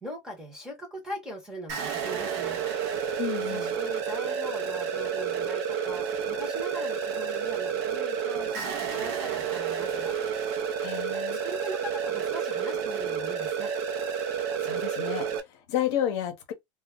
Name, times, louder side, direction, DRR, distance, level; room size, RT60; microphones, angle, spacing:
voice 1, 0.0-10.1 11.4-13.7, right 1 dB, 5° right, 0.8 m, -40 dB
sound 1, 1.7-15.4, right 7 dB, 55° right, 0.5 m, -30 dB
voice 2, 3.2-3.8 10.8-11.4 14.5-16.5, left 11 dB, 60° left, 0.7 m, -31 dB
2.2 x 2.0 x 3.5 m
supercardioid pair, 170°, 16 cm